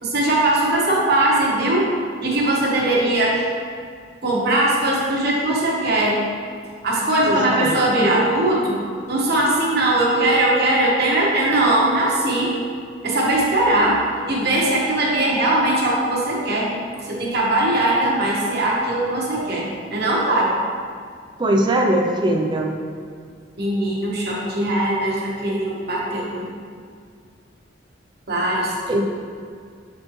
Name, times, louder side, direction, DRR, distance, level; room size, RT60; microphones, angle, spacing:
voice 1, 0.0-1.9 2.2-3.5 4.2-6.2 6.8-8.8 9.1-12.5 13.0-14.0 14.3-16.7 17.0-20.5 23.6-26.5 28.3-29.0, right 1 dB, 55° right, -4 dB, 1.3 m, -20 dB
voice 2, 7.2-7.7 21.4-22.7 28.9-29.0, right 1 dB, 25° right, 1 dB, 0.5 m, -20 dB
7.2 x 4.3 x 3.1 m, 2.1 s
head